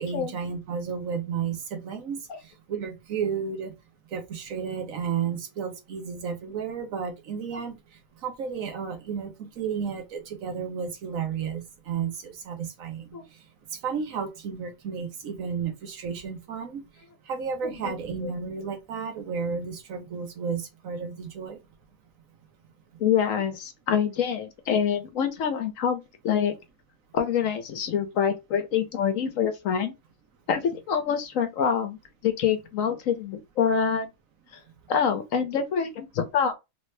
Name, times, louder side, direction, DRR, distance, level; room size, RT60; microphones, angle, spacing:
voice 1, 0.0-2.2 2.7-3.7 4.1-7.7 8.2-13.0 13.8-16.8 17.3-21.6, right 6 dB, 70° right, 1.2 m, -32 dB
voice 2, 17.6-18.0 18.2-18.3 23.0-26.5 27.1-29.9 30.5-32.0 32.2-34.1 34.5-34.6 34.9-36.5, left 7 dB, 70° left, 1.1 m, -26 dB
3.3 x 2.7 x 3.2 m
omnidirectional pair, 1.5 m